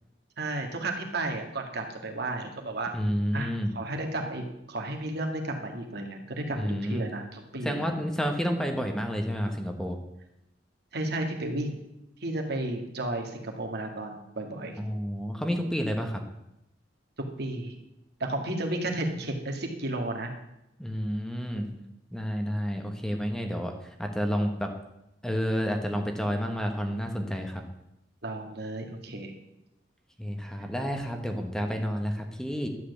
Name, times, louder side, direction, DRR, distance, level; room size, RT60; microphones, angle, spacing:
voice 1, 0.4-2.9 3.3-7.9 10.9-11.8 12.2-14.7 17.4-17.8 18.2-20.3 21.5-21.9 28.2-29.3, right 2 dB, 60° right, 3 dB, 2.2 m, -33 dB
voice 2, 2.9-3.7 6.6-7.1 7.6-10.0 14.8-16.2 20.8-21.7 22.1-23.7 24.0-24.7 25.2-27.6 30.2-32.7, equal, 5° left, 4 dB, 1.2 m, -30 dB
12.0 x 7.9 x 8.1 m, 0.85 s
head